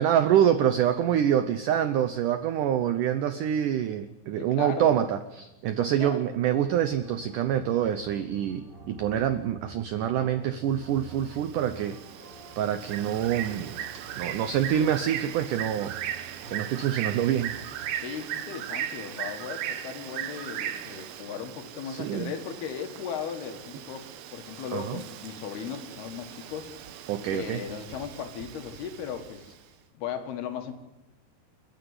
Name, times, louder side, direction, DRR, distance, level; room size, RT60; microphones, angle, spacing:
voice 1, 0.0-12.0 12.6-13.8 14.2-15.9 16.5-17.5 21.9-22.3 24.7-25.0 27.1-27.6, right 10 dB, 90° right, 10 dB, 1.8 m, -26 dB
voice 2, 4.4-5.1 5.8-6.2 18.0-26.7 27.3-29.6 29.9-30.7, left 7 dB, 70° left, 6 dB, 3.5 m, -37 dB
sound 1, 6.6-17.9, right 3 dB, 45° right, 6.2 m, -49 dB
Bird, 10.8-29.6, right 10 dB, 70° right, 2.7 m, -38 dB
29.5 x 10.0 x 9.7 m, 0.99 s
omnidirectional pair, 4.9 m